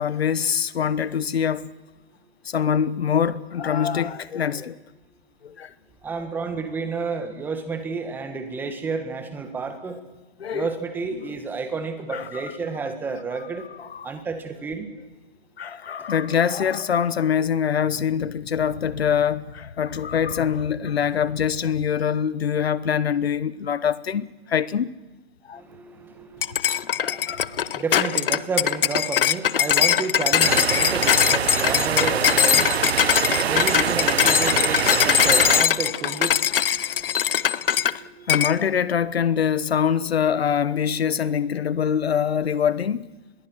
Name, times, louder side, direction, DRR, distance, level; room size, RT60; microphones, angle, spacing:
voice 1, 0.0-1.7 2.4-4.8 5.4-5.7 10.4-10.7 11.3-11.4 12.1-12.5 13.8-14.1 15.6-24.9 25.5-25.6 27.0-27.7 30.8-30.9 33.2-33.5 33.8-33.9 34.2-34.3 36.5-37.0 38.3-43.0, left 8 dB, 80° left, 1.3 m, -24 dB
voice 2, 6.0-10.0 10.5-13.7 14.0-14.9 25.5-38.5, right 4 dB, 5° right, 1.6 m, -31 dB
sound 1, 26.4-38.0 38.3-38.6, left 9 dB, 60° left, 0.8 m, -21 dB
sound 2, 30.4-35.6, right 8 dB, 80° right, 1.0 m, -24 dB
25.0 x 21.5 x 6.3 m
hypercardioid pair, 165°, 31 cm